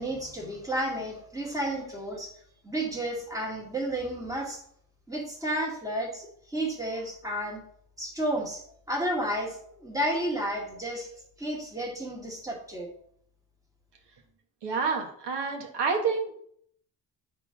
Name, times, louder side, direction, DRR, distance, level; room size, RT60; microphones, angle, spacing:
voice 1, 0.0-2.3 2.6-4.6 5.1-7.6 8.0-8.6 8.9-11.1 11.4-12.9, right 1 dB, 10° right, -3 dB, 2.0 m, -32 dB
voice 2, 14.6-16.3, right 5 dB, 70° right, 2 dB, 1.7 m, -28 dB
9.2 x 3.8 x 6.0 m, 0.64 s
cardioid pair, 165°, 43 cm